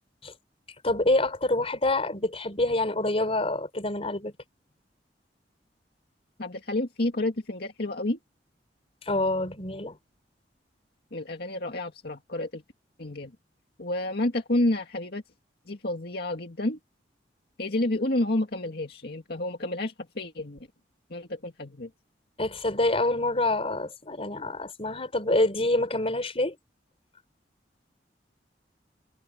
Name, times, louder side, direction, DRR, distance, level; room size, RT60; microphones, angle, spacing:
voice 1, 0.8-4.3 9.1-10.0 22.4-26.6, left 2 dB, 35° left, 4.6 m, -26 dB
voice 2, 6.4-8.2 11.1-12.6 13.0-13.3 13.8-15.2 15.7-16.8 17.6-20.6 21.1-21.9, left 1 dB, 60° left, 2.1 m, -29 dB
head